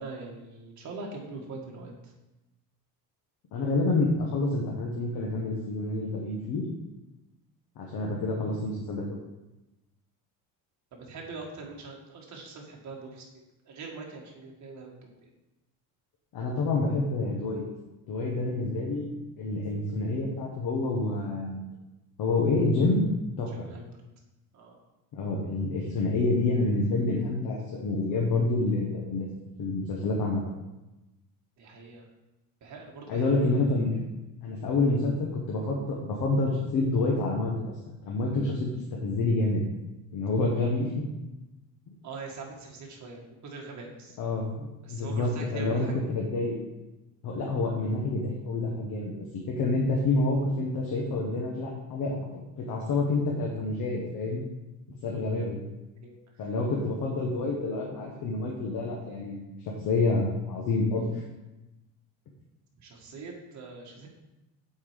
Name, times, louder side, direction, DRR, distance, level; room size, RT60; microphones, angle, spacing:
voice 1, 0.0-2.1 10.9-15.3 23.5-23.8 24.5-24.8 31.6-32.1 32.6-33.8 42.0-44.2 44.8-46.2 56.0-56.2 62.8-64.1, right 3 dB, 45° right, -1 dB, 1.8 m, -43 dB
voice 2, 3.5-6.6 7.8-9.2 16.3-17.6 18.1-19.1 19.4-21.6 22.2-23.1 23.4-23.7 25.1-29.3 29.6-30.4 33.1-34.0 34.4-37.8 38.0-38.7 39.0-39.6 40.1-40.9 44.2-46.6 47.2-49.1 49.5-54.4 55.0-55.6 56.4-59.4 59.8-61.2, left 2 dB, 65° left, -1 dB, 1.3 m, -28 dB
7.3 x 4.5 x 5.1 m, 1.0 s
cardioid pair, 140°, 38 cm